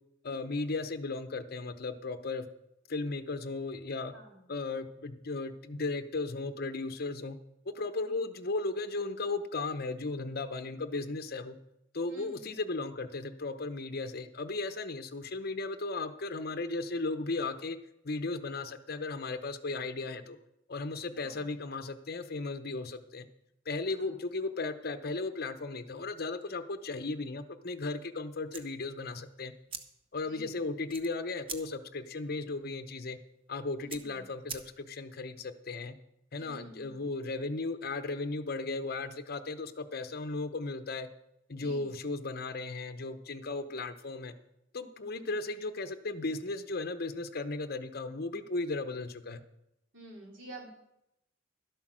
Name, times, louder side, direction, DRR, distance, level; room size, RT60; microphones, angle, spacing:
voice 1, 0.2-2.5 2.9-4.1 4.5-7.4 7.7-11.6 11.9-17.8 18.0-20.4 20.7-23.3 23.7-29.5 30.1-33.2 33.5-35.9 36.3-41.1 41.5-44.3 44.7-49.4, left 3 dB, 55° left, 10 dB, 0.8 m, -36 dB
voice 2, 12.1-12.5 21.1-21.4 24.0-24.2 30.3-30.7 33.8-34.3 36.4-37.0 41.5-42.0 45.0-45.3 49.9-50.7, right 1 dB, 80° right, 0 dB, 3.2 m, -50 dB
sound 1, 28.4-35.1, right 6 dB, 30° right, 0.9 m, -48 dB
12.5 x 8.1 x 6.2 m, 0.84 s
head